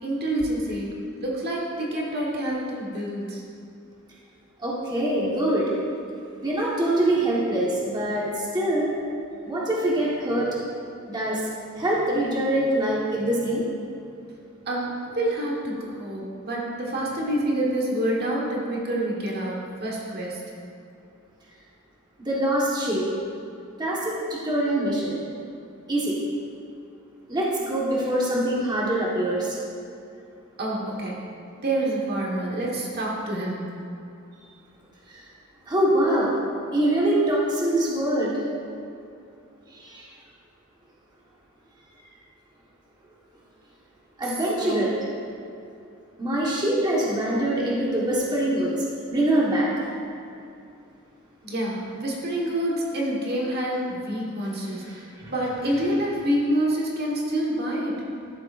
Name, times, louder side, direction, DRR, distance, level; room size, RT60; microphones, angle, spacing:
voice 1, 0.0-3.4 14.7-20.4 30.6-31.2 31.6-33.7 44.2-44.9 51.4-58.0, right 1 dB, 50° right, -3 dB, 1.4 m, -27 dB
voice 2, 4.6-5.6 6.4-8.9 9.4-10.5 11.1-11.5 11.8-13.6 22.2-23.1 23.8-25.1 25.9-26.1 27.3-29.6 35.1-35.2 35.7-36.4 36.7-38.3 39.7-40.1 44.2-44.9 46.2-48.7 49.1-49.7 54.8-55.3, right 1 dB, 20° right, -6 dB, 1.3 m, -24 dB
12.5 x 7.6 x 2.5 m, 2.6 s
head